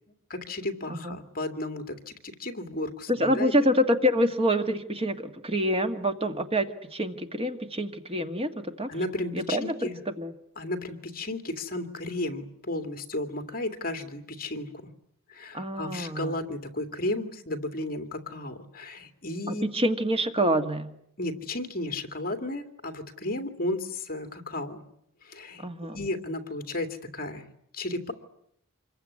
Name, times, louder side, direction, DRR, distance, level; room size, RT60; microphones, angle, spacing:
voice 1, 0.3-3.5 8.9-10.0 10.6-14.9 15.3-19.6 21.2-24.8 25.2-25.6 25.9-28.1, left 1 dB, 40° left, 7 dB, 2.5 m, -34 dB
voice 2, 3.1-8.9 9.3-9.7 10.2-10.3 15.5-16.4 19.5-20.9 25.6-26.1, equal, 25° right, 7 dB, 1.8 m, -26 dB
27.0 x 22.5 x 9.8 m, 0.74 s
head